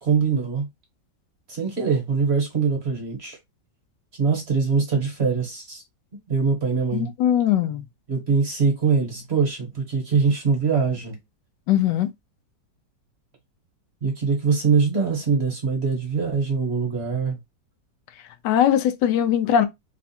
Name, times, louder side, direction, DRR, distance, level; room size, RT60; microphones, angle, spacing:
voice 1, 0.0-0.7 1.5-3.4 4.2-5.8 6.3-7.1 8.1-11.2 14.0-17.4, right 5 dB, 40° right, 1.3 m, -23 dB
voice 2, 6.9-7.8 11.7-12.1 18.4-19.7, left 10 dB, 80° left, 1.3 m, -20 dB
3.4 x 2.3 x 4.2 m
omnidirectional pair, 1.9 m